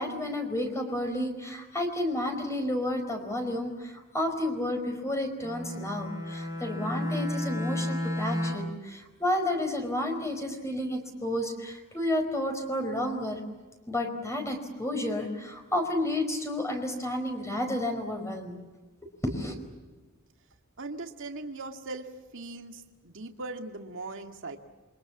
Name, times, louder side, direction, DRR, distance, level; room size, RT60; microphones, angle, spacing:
voice 1, 0.0-13.4 13.9-18.6 19.2-19.5, left 1 dB, 15° left, 4 dB, 4.8 m, -31 dB
Bowed string instrument, 5.4-8.8, left 1 dB, 35° left, 6.3 m, -32 dB
voice 2, 20.8-24.6, right 2 dB, 60° right, 4 dB, 2.1 m, -39 dB
28.5 x 24.0 x 7.3 m, 1.3 s
head